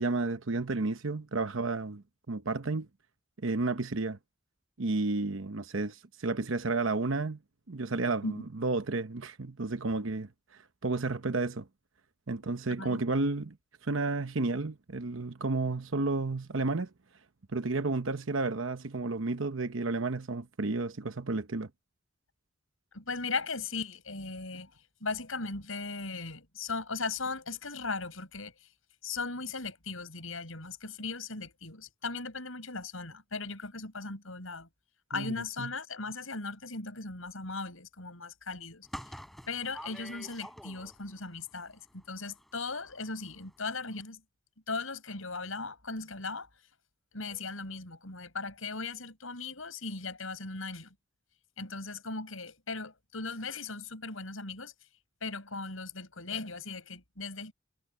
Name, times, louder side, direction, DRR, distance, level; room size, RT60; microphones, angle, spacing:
voice 1, 0.0-2.9 3.4-4.2 4.8-7.4 7.7-11.7 12.3-13.6 13.8-16.9 17.5-21.7 35.1-35.7, right 3 dB, 65° right, 1.0 m, -32 dB
voice 2, 22.9-24.7 25.0-28.7 29.0-34.7 35.1-39.2 39.5-44.2 44.7-46.5 47.1-50.9 51.6-54.7 55.2-57.5, left 3 dB, 80° left, 6.6 m, -38 dB
sound 1, 38.8-41.2 41.5-43.1 43.4-43.5 43.8-43.9, equal, ahead, 6.5 m, -47 dB
head